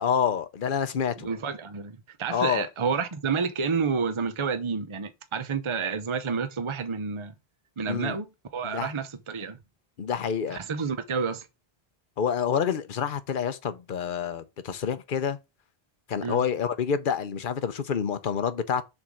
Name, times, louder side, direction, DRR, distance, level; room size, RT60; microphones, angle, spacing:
voice 1, 0.0-1.3 2.3-2.7 7.9-8.2 8.6-8.9 10.0-10.6 12.2-15.4 16.1-18.8, left 7 dB, 55° left, 0.9 m, -28 dB
voice 2, 1.2-7.3 7.8-9.6 10.5-11.5 16.2-16.4, right 5 dB, 35° right, 0.8 m, -30 dB
7.2 x 3.7 x 6.2 m
omnidirectional pair, 1.0 m